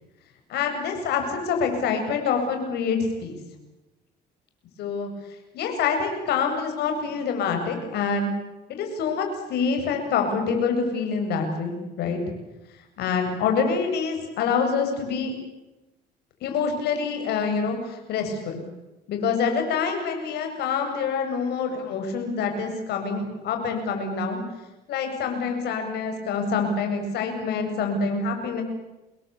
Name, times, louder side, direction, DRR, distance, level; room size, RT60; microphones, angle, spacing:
voice 1, 0.5-3.4 4.8-5.1 5.5-8.3 8.7-12.2 13.0-15.3 16.4-18.6 19.1-24.4 24.9-28.6, left 5 dB, 75° left, 4 dB, 7.7 m, -26 dB
28.5 x 22.0 x 8.5 m, 1.0 s
cardioid pair, 110°, 17 cm